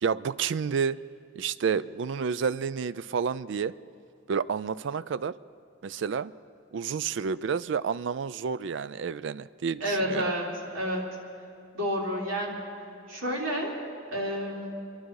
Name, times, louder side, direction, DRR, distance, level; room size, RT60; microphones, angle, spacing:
voice 1, 0.0-1.0 1.4-3.7 4.3-5.4 5.8-6.3 6.7-10.2, right 6 dB, 65° right, 16 dB, 0.4 m, -30 dB
voice 2, 9.8-10.5 10.7-11.0 11.7-12.6 13.1-13.7 14.1-14.7, equal, 85° right, -4 dB, 3.6 m, -29 dB
25.5 x 11.5 x 4.8 m, 2.6 s
head